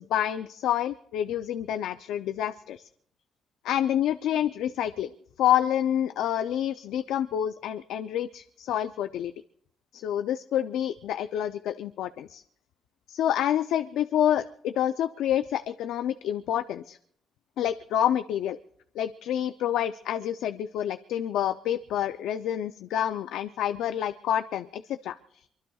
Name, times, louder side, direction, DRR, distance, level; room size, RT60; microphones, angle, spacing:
voice 1, 0.0-2.9 3.6-5.1 5.4-9.3 9.9-12.4 13.1-17.0 17.6-18.6 19.0-25.4, left 11 dB, 80° left, 10 dB, 0.5 m, -28 dB
24.0 x 23.5 x 2.4 m, 0.66 s
cardioid pair, 110°, 0 cm